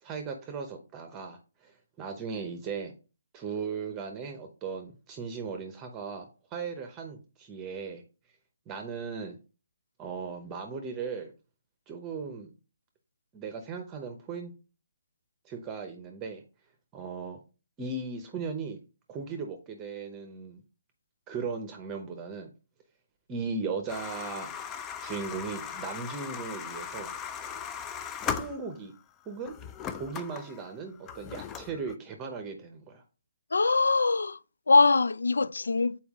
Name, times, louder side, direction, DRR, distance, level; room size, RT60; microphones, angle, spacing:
voice 1, 0.0-2.9 3.3-8.0 8.7-9.4 10.0-11.3 11.9-12.5 13.3-14.5 15.4-16.4 16.9-17.4 17.8-18.8 19.1-20.6 21.3-22.5 23.3-24.5 25.0-27.1 28.3-28.9 29.3-29.6 29.9-33.0, right 5 dB, 15° right, 0.8 m, -37 dB
sound 1, 23.9-29.0 29.4-32.0, left 7 dB, 15° left, 0.4 m, -38 dB
voice 2, 33.5-34.4 34.7-36.0, left 3 dB, 90° left, 0.3 m, -22 dB
7.0 x 4.4 x 3.6 m
hypercardioid pair, 160°, 0 cm